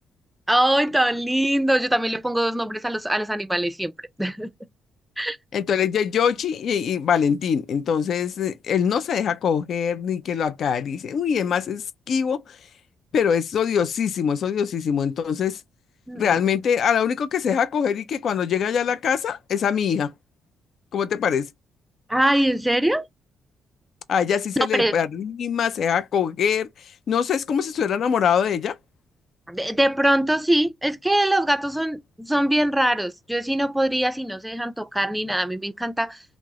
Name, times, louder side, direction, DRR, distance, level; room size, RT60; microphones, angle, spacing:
voice 1, 0.5-3.9 4.2-4.5 5.2-5.4 16.1-16.4 22.1-23.1 24.7-24.9 29.5-36.2, right 1 dB, 5° right, 0.4 m, -22 dB
voice 2, 5.5-12.6 13.1-15.6 16.2-20.1 20.9-21.5 24.1-28.8, left 7 dB, 60° left, 0.4 m, -23 dB
3.0 x 2.0 x 3.5 m
cardioid pair, 90°, 0 cm